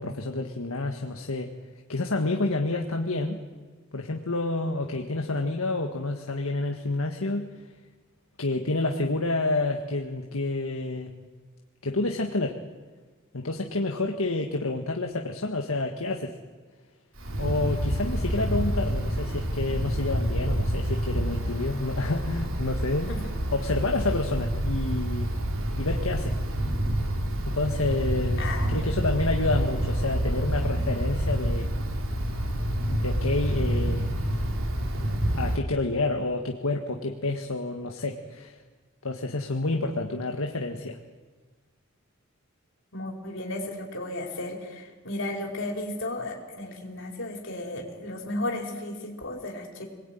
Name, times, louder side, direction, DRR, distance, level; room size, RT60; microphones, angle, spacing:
voice 1, 0.0-1.5 1.9-3.4 3.9-7.5 8.4-11.1 11.8-12.6 13.3-16.4 17.4-23.1 23.5-25.4 25.8-26.3 27.4-31.7 32.9-34.1 35.4-38.6 39.0-41.0, left 2 dB, 75° left, 3 dB, 1.7 m, -29 dB
Wind, 17.2-35.6, equal, 65° right, 3.2 m, -28 dB
voice 2, 28.4-29.0 42.9-49.9, left 1 dB, 60° left, 1 dB, 5.0 m, -34 dB
27.0 x 21.0 x 9.3 m, 1.4 s
head